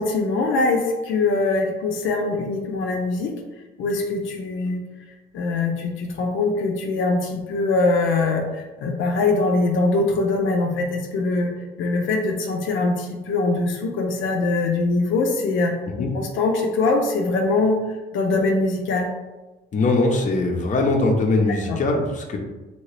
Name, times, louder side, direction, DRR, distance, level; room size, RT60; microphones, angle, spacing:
voice 1, 0.0-3.3 3.8-4.8 5.3-11.5 11.8-17.8 18.1-19.1 21.7-21.8, left 3 dB, 80° left, 2 dB, 0.5 m, -22 dB
voice 2, 19.7-22.4, left 2 dB, 40° left, 1 dB, 0.6 m, -21 dB
2.9 x 2.8 x 3.2 m, 1.1 s
cardioid pair, 90°, 20 cm